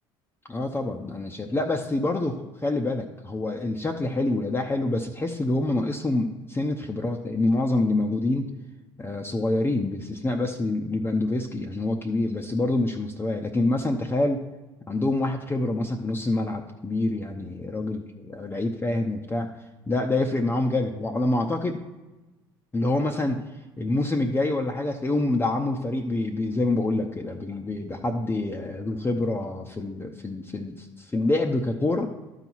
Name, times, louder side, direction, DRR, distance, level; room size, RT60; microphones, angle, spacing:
voice 1, 0.5-8.5 9.0-14.4 14.9-18.0 18.3-19.5 19.9-21.8 22.7-23.4 23.8-32.1, left 2 dB, 15° left, 2 dB, 0.7 m, -26 dB
12.0 x 4.1 x 4.5 m, 1.1 s
hypercardioid pair, 70°, 13 cm